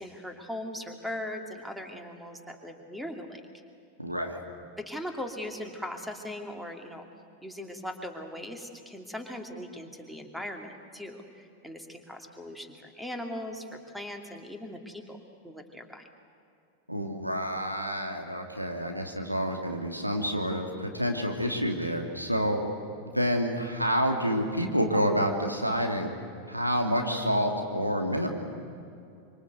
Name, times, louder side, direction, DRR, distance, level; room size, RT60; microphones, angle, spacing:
voice 1, 0.0-3.4 4.9-7.1 7.4-13.7 13.9-15.2 15.4-16.0, left 1 dB, ahead, 4 dB, 2.7 m, -39 dB
voice 2, 4.0-4.4 16.9-22.6 23.1-26.1 26.5-28.3, equal, 90° right, 2 dB, 2.8 m, -28 dB
25.5 x 25.5 x 8.2 m, 2.5 s
figure-of-eight pair, 90°, 0 cm